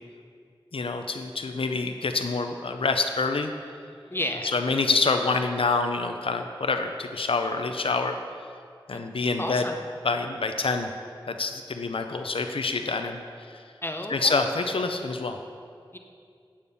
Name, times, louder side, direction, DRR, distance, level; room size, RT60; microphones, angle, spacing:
voice 1, 0.7-3.5 4.4-8.2 8.9-9.6 10.0-10.9 11.3-13.2 14.1-15.4, left 3 dB, 80° left, 6 dB, 0.5 m, -26 dB
voice 2, 4.1-4.6 8.9-9.0 9.4-9.8 13.8-14.5 15.9-16.0, left 1 dB, 25° left, 4 dB, 0.7 m, -32 dB
8.6 x 8.4 x 5.3 m, 2.3 s
wide cardioid pair, 65°, 9 cm